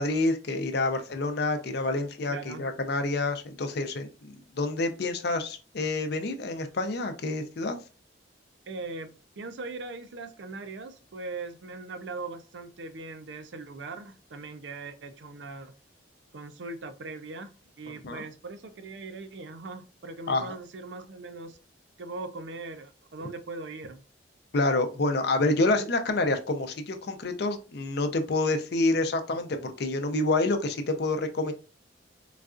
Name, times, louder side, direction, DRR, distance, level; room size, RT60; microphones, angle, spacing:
voice 1, 0.0-7.8 18.0-18.3 20.3-20.5 24.5-31.5, left 2 dB, 60° left, 6 dB, 0.5 m, -28 dB
voice 2, 2.3-2.6 8.7-15.7 16.3-21.6 22.0-24.0, right 3 dB, 75° right, 9 dB, 0.5 m, -40 dB
4.0 x 2.3 x 2.4 m, 0.33 s
head